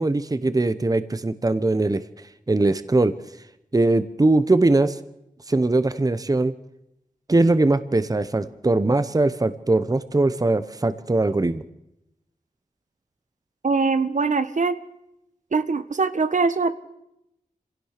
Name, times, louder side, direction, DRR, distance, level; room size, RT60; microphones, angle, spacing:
voice 1, 0.0-2.0 2.5-3.1 3.7-5.0 5.5-6.5 7.3-11.6, right 2 dB, 25° right, 13 dB, 1.0 m, -21 dB
voice 2, 13.6-14.8 15.5-16.7, right 4 dB, 65° right, 11 dB, 1.2 m, -22 dB
26.5 x 16.5 x 6.7 m, 0.86 s
wide cardioid pair, 80°, 14 cm